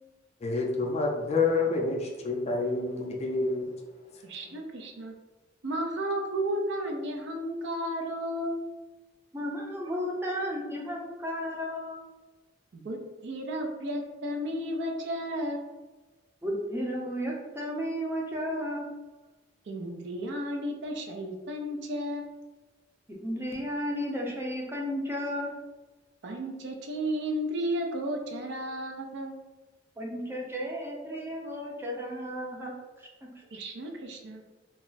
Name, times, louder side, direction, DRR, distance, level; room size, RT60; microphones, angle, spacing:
voice 1, 0.4-3.7, left 3 dB, 35° left, 1 dB, 0.4 m, -28 dB
voice 2, 4.2-5.1 5.6-8.7 12.7-15.8 19.7-22.4 26.2-29.3 33.5-34.4, equal, 65° right, 2 dB, 0.5 m, -33 dB
voice 3, 9.3-12.0 16.4-18.9 23.2-25.5 30.0-32.7 33.2-33.3, equal, 15° right, -2 dB, 0.5 m, -33 dB
2.3 x 2.0 x 3.9 m, 1.2 s
head